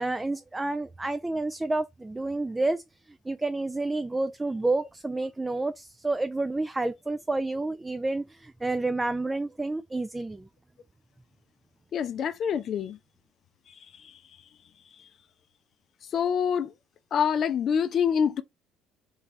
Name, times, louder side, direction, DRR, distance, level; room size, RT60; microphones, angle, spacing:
voice 1, 0.0-2.8 3.3-10.5, right 2 dB, 15° right, 0.4 m, -29 dB
voice 2, 11.9-13.0 16.1-16.7 17.1-18.4, left 7 dB, 45° left, 0.5 m, -26 dB
3.3 x 3.1 x 3.8 m
figure-of-eight pair, 50°, 0 cm